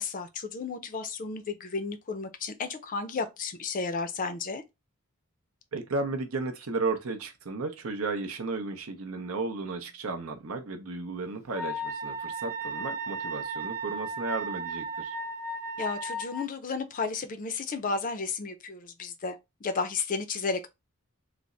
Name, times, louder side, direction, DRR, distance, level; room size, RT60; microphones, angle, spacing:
voice 1, 0.0-4.6 15.8-20.7, left 4 dB, 40° left, 0.5 m, -33 dB
voice 2, 5.7-15.1, right 3 dB, 70° right, 0.7 m, -34 dB
Wind instrument woodwind instrument, 11.5-16.5, right 2 dB, 10° right, 0.7 m, -35 dB
3.3 x 2.0 x 3.7 m
head